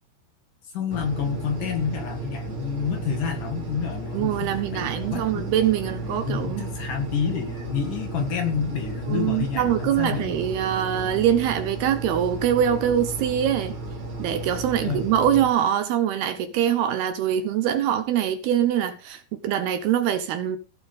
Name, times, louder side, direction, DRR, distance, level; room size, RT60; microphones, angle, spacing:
voice 1, 0.7-5.5 5.8-10.3 14.8-15.1, left 6 dB, 55° left, 2.7 m, -29 dB
sound 1, 0.9-15.5, right 2 dB, 30° right, 4.0 m, -34 dB
voice 2, 4.1-6.6 9.1-13.7 14.2-20.6, right 10 dB, 75° right, 2.6 m, -23 dB
16.5 x 7.6 x 5.4 m
omnidirectional pair, 5.3 m